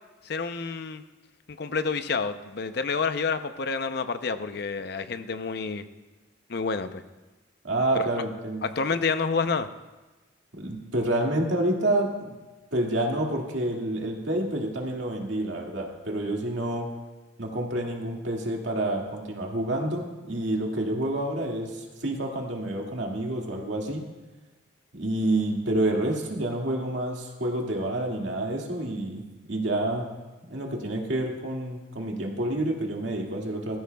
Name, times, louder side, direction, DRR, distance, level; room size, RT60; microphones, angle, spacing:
voice 1, 0.3-1.0 1.5-5.8 6.5-7.0 7.9-8.1 8.6-9.7, left 4 dB, 55° left, 10 dB, 0.6 m, -29 dB
voice 2, 7.6-8.7 10.6-12.3 12.7-16.9 17.4-24.1 24.9-29.2 29.5-30.1 30.5-33.8, right 1 dB, 70° right, 0 dB, 2.1 m, -28 dB
18.5 x 15.0 x 2.3 m, 1.2 s
head